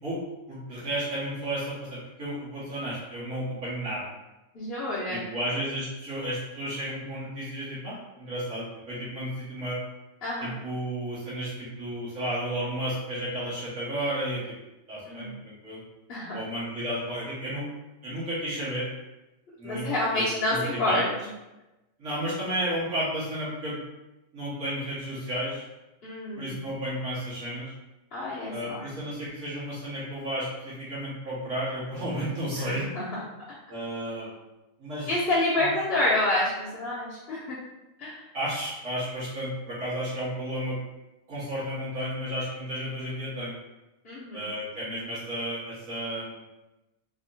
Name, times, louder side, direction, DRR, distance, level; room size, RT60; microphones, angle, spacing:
voice 1, 0.5-4.0 5.1-9.8 10.4-14.6 14.9-15.8 16.3-17.7 18.0-18.9 19.6-19.9 20.1-21.0 22.0-23.8 24.3-25.7 26.4-27.7 28.5-32.8 33.7-34.4 34.8-35.1 35.6-35.7 38.3-40.8 41.3-43.5 44.3-46.4, equal, 85° right, -11 dB, 1.9 m, -32 dB
voice 2, 4.5-5.3 10.2-10.6 15.1-15.4 16.1-16.3 19.6-21.1 26.0-26.6 28.1-28.9 32.6-33.5 35.1-37.6 38.0-38.2 44.0-44.5, left 1 dB, 55° left, -10 dB, 1.1 m, -28 dB
4.3 x 2.9 x 2.7 m, 1.0 s
omnidirectional pair, 1.3 m